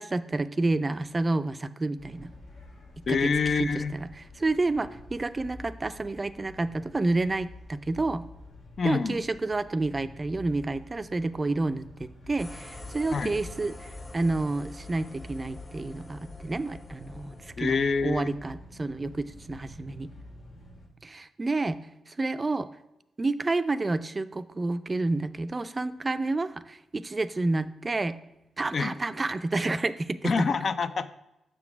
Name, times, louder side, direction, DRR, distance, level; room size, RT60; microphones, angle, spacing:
voice 1, 0.0-2.3 3.0-3.2 3.6-4.1 4.4-8.3 8.8-20.1 21.0-22.7 23.2-28.2 28.6-30.6, right 2 dB, 35° right, 13 dB, 0.4 m, -29 dB
sound 1, 2.0-20.9, left 2 dB, 80° left, 1.4 m, -48 dB
voice 2, 3.1-3.9 8.8-9.2 13.1-13.3 17.6-18.3 28.7-29.0 30.2-31.1, left 5 dB, 60° left, 11 dB, 0.4 m, -26 dB
sound 2, 12.4-17.5, left 2 dB, 35° left, 1.2 m, -46 dB
6.7 x 3.9 x 5.8 m, 0.92 s
supercardioid pair, 55°, 0 cm